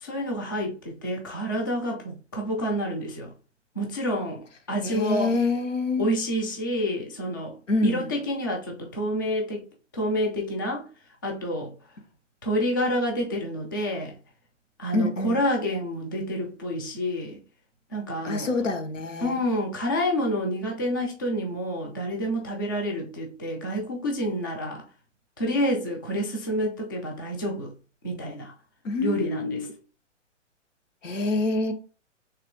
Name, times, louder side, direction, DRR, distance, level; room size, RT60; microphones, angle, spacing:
voice 1, 0.0-3.3 3.8-5.3 6.0-7.6 7.8-9.7 9.9-10.9 11.2-11.7 12.4-14.1 14.8-17.4 17.9-18.5 19.2-24.8 25.4-27.7 28.0-28.5 29.0-29.7, equal, 20° left, 0.3 m, -28 dB
voice 2, 4.8-6.1 7.7-8.1 14.9-15.4 18.2-19.4 28.8-29.7 31.0-31.7, left 2 dB, 85° left, 1.0 m, -26 dB
3.3 x 2.9 x 3.6 m
hypercardioid pair, 145°, 37 cm